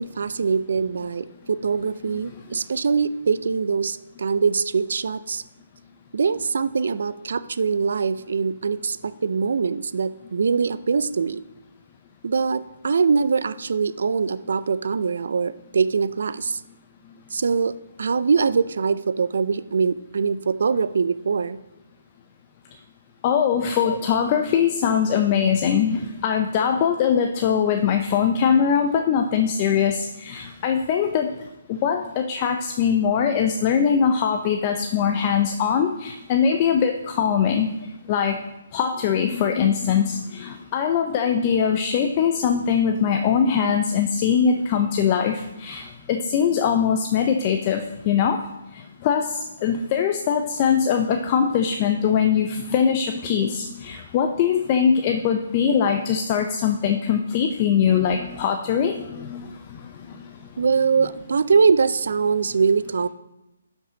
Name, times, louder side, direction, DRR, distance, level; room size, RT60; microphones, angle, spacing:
voice 1, 0.0-5.4 6.1-11.4 12.2-16.6 17.3-17.7 18.0-21.6 23.9-24.0 60.6-63.1, right 5 dB, 70° right, 15 dB, 0.4 m, -23 dB
voice 2, 23.2-31.3 31.7-37.7 38.1-38.4 38.7-48.4 48.7-59.8, left 7 dB, 30° left, 5 dB, 0.6 m, -22 dB
12.0 x 5.4 x 3.9 m, 0.95 s
hypercardioid pair, 150°, 0 cm